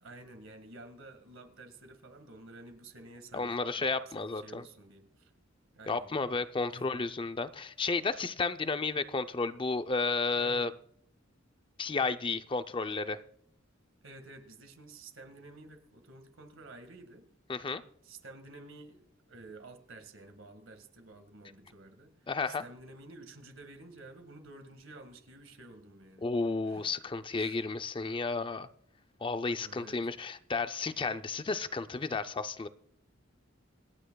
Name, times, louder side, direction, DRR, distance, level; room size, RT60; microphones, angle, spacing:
voice 1, 0.0-5.3 5.8-6.1 6.7-6.9 10.3-10.8 14.0-17.3 18.0-26.3 26.7-26.9 27.3-27.6 29.6-30.0, right 2 dB, 80° right, 8 dB, 1.8 m, -51 dB
voice 2, 3.3-4.6 5.9-10.7 11.8-13.2 17.5-17.8 22.3-22.6 26.2-28.7 29.2-32.7, left 4 dB, 25° left, 11 dB, 0.5 m, -32 dB
26.5 x 8.8 x 2.3 m, 0.66 s
head